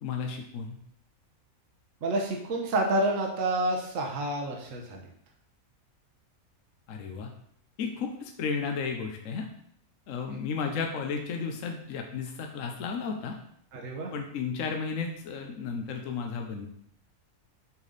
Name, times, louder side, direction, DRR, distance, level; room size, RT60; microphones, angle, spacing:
voice 1, 0.0-0.8 6.9-7.3 7.8-9.5 10.1-13.4 14.1-16.7, left 5 dB, 65° left, 3 dB, 1.1 m, -33 dB
voice 2, 2.0-5.0 10.3-10.4 13.7-14.1, right 1 dB, 65° right, 0 dB, 1.4 m, -29 dB
7.3 x 5.2 x 4.0 m, 0.70 s
omnidirectional pair, 1.5 m